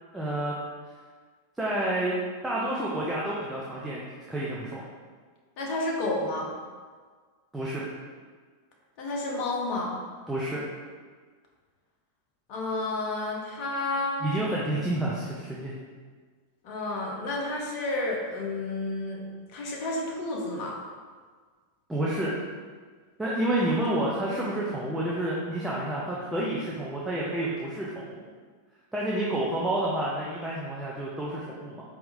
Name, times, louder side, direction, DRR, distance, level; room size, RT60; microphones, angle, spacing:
voice 1, 0.1-0.6 1.6-2.2 2.4-4.8 7.5-7.8 10.3-10.6 14.2-15.7 21.9-22.4 23.2-28.2 28.9-31.8, right 1 dB, 10° right, -6 dB, 0.6 m, -29 dB
voice 2, 5.6-6.5 9.0-10.0 12.5-14.3 16.6-20.8, left 2 dB, 45° left, -1 dB, 0.7 m, -31 dB
4.3 x 3.5 x 2.6 m, 1.5 s
figure-of-eight pair, 90°, 0 cm